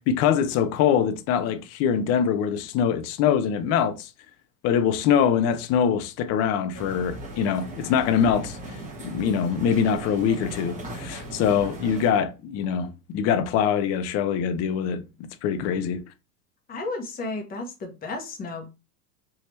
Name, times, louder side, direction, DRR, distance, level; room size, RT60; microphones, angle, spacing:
voice 1, 0.0-4.1 4.6-8.6 9.0-15.0 15.4-16.0, left 8 dB, 35° left, 0.5 m, -23 dB
sound 1, 6.7-12.1, right 1 dB, 15° right, 1.2 m, -38 dB
voice 2, 16.7-18.7, left 3 dB, 20° left, 0.9 m, -33 dB
3.4 x 2.7 x 3.1 m
hypercardioid pair, 105°, 47 cm